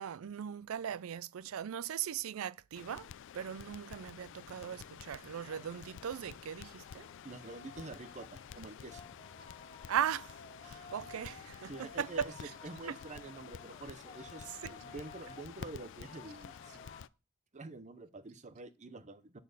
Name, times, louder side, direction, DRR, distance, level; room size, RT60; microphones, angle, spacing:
voice 1, 0.0-3.1 3.3-7.1 9.9-10.3 10.6-12.3 12.9-13.0 14.6-14.7, right 9 dB, 80° right, 0.4 m, -38 dB
Crackle, 2.7-17.1, left 8 dB, 60° left, 0.4 m, -51 dB
sound 1, 5.4-17.1, left 4 dB, 30° left, 0.8 m, -55 dB
voice 2, 7.2-9.1 11.0-11.1 11.6-16.8 17.5-19.4, right 2 dB, 35° right, 0.7 m, -47 dB
sound 2, 12.5-13.3 13.6-14.4 14.8-15.7, left 1 dB, 10° left, 1.9 m, -68 dB
10.5 x 4.3 x 6.7 m
head